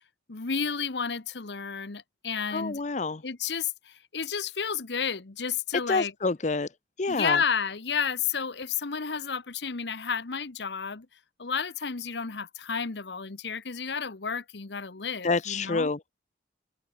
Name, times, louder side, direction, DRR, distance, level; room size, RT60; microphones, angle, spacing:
voice 1, 0.3-2.8 3.2-6.1 7.1-11.1 11.4-15.9, left 6 dB, 75° left, 1.1 m, -31 dB
voice 2, 2.5-3.2 5.9-6.7 7.0-7.4 15.2-16.0, left 3 dB, 40° left, 0.7 m, -27 dB
head